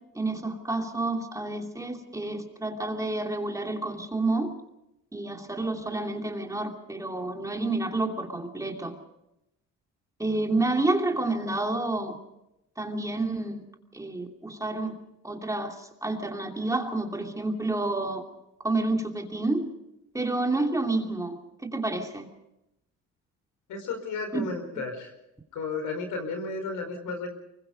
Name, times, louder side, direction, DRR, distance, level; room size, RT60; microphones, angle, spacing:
voice 1, 0.1-4.5 5.1-9.0 10.2-12.2 12.8-13.6 13.9-14.9 15.2-18.2 18.6-19.6 20.1-21.4 21.7-22.3 24.3-24.5, right 2 dB, 10° right, 3 dB, 2.9 m, -29 dB
voice 2, 23.7-25.1 25.5-27.3, left 4 dB, 85° left, 7 dB, 4.8 m, -33 dB
24.0 x 21.5 x 5.3 m, 0.87 s
cardioid pair, 90°, 30 cm